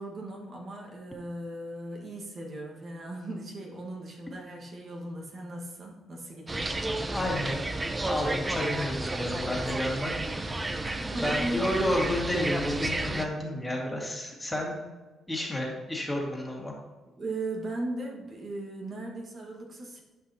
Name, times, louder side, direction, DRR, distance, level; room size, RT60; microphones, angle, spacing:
voice 1, 0.0-6.8 10.9-12.0 17.2-20.0, right 1 dB, 50° right, -1 dB, 1.6 m, -37 dB
sound 1, 6.5-13.3, right 2 dB, 20° right, 0.6 m, -32 dB
voice 2, 7.1-7.6 8.1-10.1 10.9-14.8 15.3-16.7, left 1 dB, 10° left, -2 dB, 2.0 m, -31 dB
11.5 x 5.4 x 2.9 m, 1.2 s
cardioid pair, 90°, 0 cm